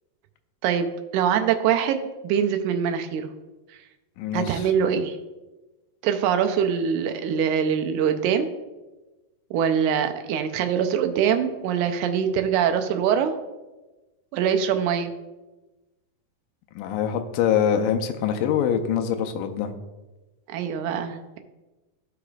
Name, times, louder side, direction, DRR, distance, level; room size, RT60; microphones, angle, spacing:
voice 1, 0.6-3.3 4.3-5.2 6.0-8.5 9.5-13.3 14.3-15.1 20.5-21.4, right 8 dB, 80° right, 6 dB, 1.8 m, -23 dB
voice 2, 4.2-4.6 16.8-19.7, left 8 dB, 85° left, 5 dB, 2.3 m, -24 dB
14.5 x 5.0 x 2.4 m, 1.1 s
omnidirectional pair, 4.0 m